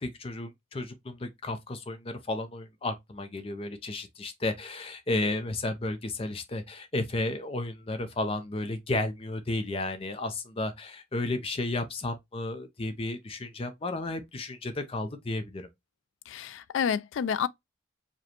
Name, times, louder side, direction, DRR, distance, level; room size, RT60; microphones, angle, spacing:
voice 1, 0.0-15.7, left 2 dB, 30° left, 0.5 m, -33 dB
voice 2, 16.3-17.5, left 7 dB, 85° left, 0.3 m, -29 dB
4.9 x 2.2 x 2.9 m
head